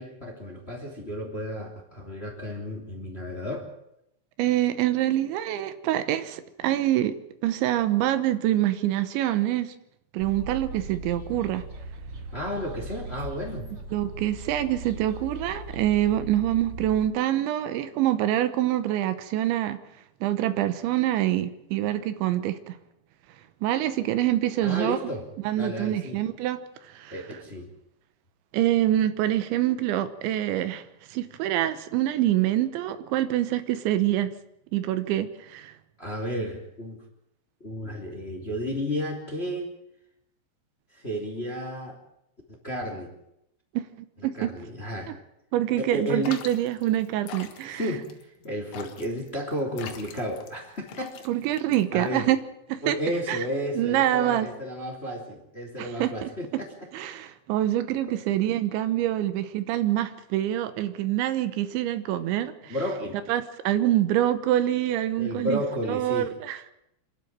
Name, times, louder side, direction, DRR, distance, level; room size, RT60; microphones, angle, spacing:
voice 1, 0.0-3.7 12.3-13.7 24.6-25.2 25.6-26.2 27.1-27.7 36.0-37.0 37.6-39.7 40.9-42.0 42.6-43.1 44.3-45.1 45.8-46.3 47.7-48.1 48.4-51.1 51.9-52.3 52.8-56.7 58.3-58.5 62.6-63.2 65.2-66.3, equal, 15° left, 1 dB, 2.5 m, -32 dB
voice 2, 4.4-9.7 10.1-11.7 13.9-19.8 20.2-22.8 23.6-25.1 25.4-27.3 28.5-34.3 34.7-35.7 43.7-43.8 44.2-44.6 45.1-45.2 45.5-47.9 51.3-52.4 52.7-53.0 53.3-53.4 53.7-54.5 55.8-56.6 56.9-62.8 63.3-65.6 65.9-66.6, right 13 dB, 80° right, 12 dB, 3.3 m, -26 dB
sound 1, 10.2-17.1, right 2 dB, 35° right, 2.8 m, -39 dB
sound 2, 46.2-52.2, left 8 dB, 80° left, 3.9 m, -43 dB
26.5 x 12.0 x 9.0 m, 0.80 s
omnidirectional pair, 5.3 m